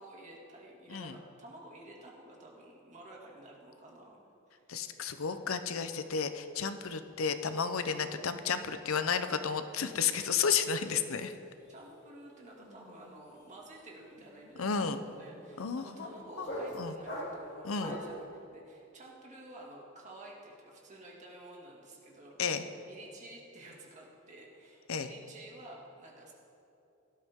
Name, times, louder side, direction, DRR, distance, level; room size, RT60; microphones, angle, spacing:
voice 1, 0.0-4.6 11.7-26.3, right 1 dB, 35° right, -2 dB, 2.2 m, -51 dB
voice 2, 4.7-11.3 14.6-15.0 15.6-16.1 16.4-16.5 16.8-16.9 17.6-17.9 22.4-22.6 24.9-25.1, left 6 dB, 90° left, 10 dB, 0.7 m, -32 dB
sound 1, 11.4-11.7 11.9-18.2, equal, 60° left, 2.8 m, -44 dB
17.5 x 12.5 x 3.7 m, 2.8 s
head